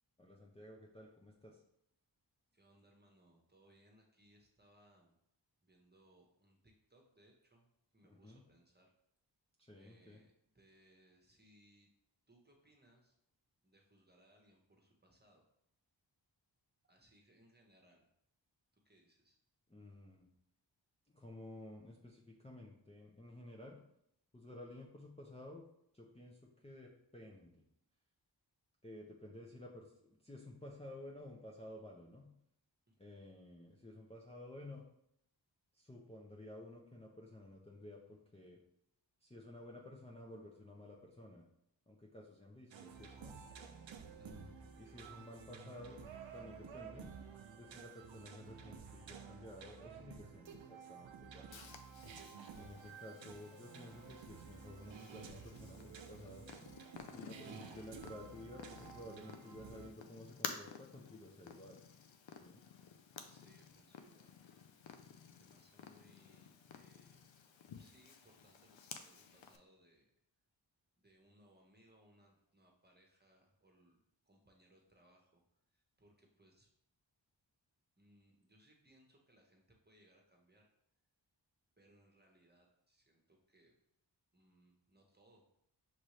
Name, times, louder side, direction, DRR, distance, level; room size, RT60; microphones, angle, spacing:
voice 1, 0.2-1.6 8.0-8.4 9.6-10.2 19.7-20.3 21.1-23.8 24.3-25.6 25.9-27.6 28.8-32.3 33.0-34.8 35.7-38.6 39.2-41.4 41.9-43.4 44.2-46.0 46.3-47.1 47.6-51.5 52.6-56.5 57.1-61.8 62.4-62.6, left 1 dB, 15° left, -3 dB, 0.7 m, -53 dB
voice 2, 2.5-5.1 5.6-7.7 7.9-8.9 9.7-11.9 12.3-13.2 13.6-15.4 16.8-18.1 18.7-19.4 32.9-33.1 44.1-44.4 63.2-64.4 65.3-70.1 71.0-75.4 75.7-76.7 78.0-80.7 81.8-83.7 84.3-85.5, right 1 dB, 20° right, 0 dB, 1.2 m, -69 dB
sound 1, 42.7-59.9, right 6 dB, 75° right, 0.6 m, -53 dB
Purr, 51.5-69.6, left 6 dB, 75° left, 0.6 m, -53 dB
6.1 x 2.6 x 3.2 m, 0.74 s
cardioid pair, 40°, 46 cm